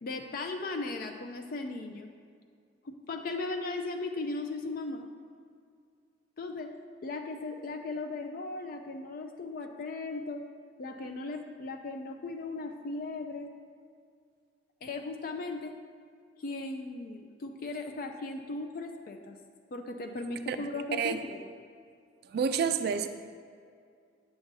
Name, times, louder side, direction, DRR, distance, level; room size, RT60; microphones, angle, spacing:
voice 1, 0.0-2.1 2.8-5.1 6.4-6.7 7.0-10.4 10.8-13.5 14.8-15.7 16.4-19.4 19.7-21.4, left 3 dB, 50° left, 4 dB, 0.4 m, -37 dB
voice 2, 22.2-23.1, right 6 dB, 60° right, 9 dB, 0.3 m, -29 dB
8.8 x 6.9 x 2.7 m, 2.2 s
head